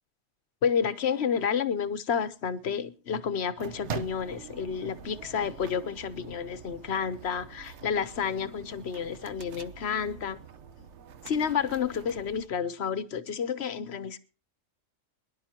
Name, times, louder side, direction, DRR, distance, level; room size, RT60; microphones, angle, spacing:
voice 1, 0.6-10.4 11.2-14.2, left 7 dB, 55° left, 1.1 m, -30 dB
sound 1, 3.6-12.5, right 7 dB, 60° right, 1.1 m, -44 dB
22.5 x 11.0 x 2.8 m
omnidirectional pair, 1.4 m